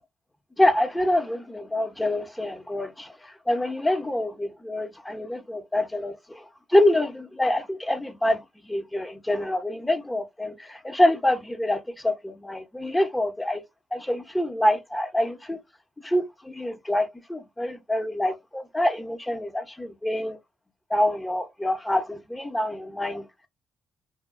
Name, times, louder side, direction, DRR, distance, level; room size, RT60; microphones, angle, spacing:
voice 1, 0.6-6.4 6.7-13.6 13.9-15.6 16.0-20.4 20.9-23.5, left 1 dB, 10° left, 0.9 m, -26 dB
2.7 x 2.3 x 2.3 m
supercardioid pair, 60°, 0 cm